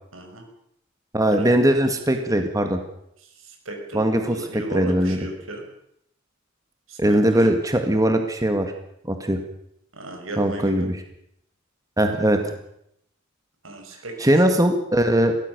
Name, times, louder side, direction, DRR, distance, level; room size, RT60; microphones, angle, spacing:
voice 1, 0.1-0.4 1.3-1.5 3.4-5.6 6.9-7.0 9.9-10.9 13.6-14.3, right 1 dB, 85° right, 3 dB, 6.4 m, -35 dB
voice 2, 1.1-2.8 3.9-5.2 7.0-8.7 9.0-9.4 10.4-11.0 12.0-12.4 14.2-15.4, right 1 dB, 15° right, 6 dB, 2.0 m, -20 dB
22.5 x 17.5 x 6.9 m, 0.75 s
head